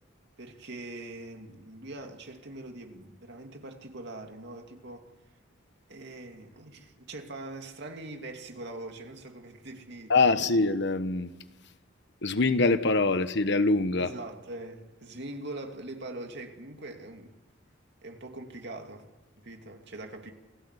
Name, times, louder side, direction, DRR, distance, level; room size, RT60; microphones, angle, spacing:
voice 1, 0.4-5.1 5.9-10.6 14.0-17.3 18.0-19.1 19.4-20.3, right 2 dB, 60° right, 2.6 m, -42 dB
voice 2, 10.1-11.3 12.2-14.1, left 3 dB, 60° left, 1.2 m, -24 dB
28.5 x 16.0 x 8.3 m
head